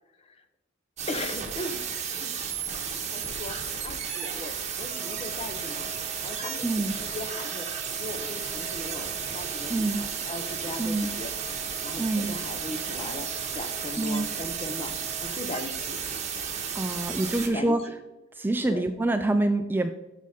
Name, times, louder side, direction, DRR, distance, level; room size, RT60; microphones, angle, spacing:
sound 1, 1.0-17.5, right 7 dB, 35° right, 1.2 m, -33 dB
voice 1, 1.1-2.8 3.1-5.9 6.2-7.7 8.0-11.3 11.8-16.0 17.5-17.9 18.3-18.9, left 2 dB, 30° left, 7 dB, 0.7 m, -39 dB
sound 2, 4.9-15.3, right 3 dB, 10° left, 1.6 m, -48 dB
voice 2, 6.6-6.9 9.7-10.0 10.8-11.1 12.0-12.3 14.0-14.3 16.7-17.8 18.4-19.9, right 2 dB, 10° right, 7 dB, 0.3 m, -26 dB
7.3 x 6.2 x 4.2 m, 1.0 s
head